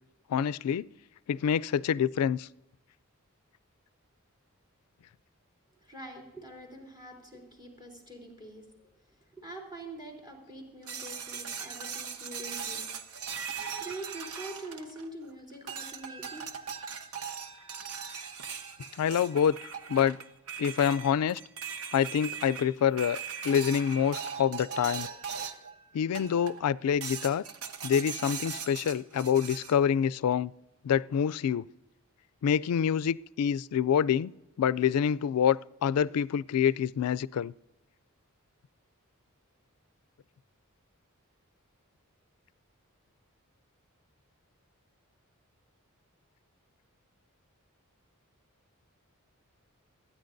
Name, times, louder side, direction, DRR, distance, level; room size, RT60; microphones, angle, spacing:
voice 1, 0.3-0.9 1.3-2.5 19.0-20.2 20.6-21.4 21.9-25.1 25.9-27.4 27.8-30.5 30.8-31.6 32.4-34.3 34.6-37.5, left 8 dB, 85° left, 0.3 m, -27 dB
voice 2, 5.8-9.0 9.3-13.4 13.8-16.4, right 1 dB, 20° right, 3.5 m, -45 dB
sound 1, 10.9-15.2 15.7-25.7 26.1-26.7 27.0-29.8, right 6 dB, 75° right, 1.0 m, -39 dB
27.0 x 10.0 x 2.6 m
head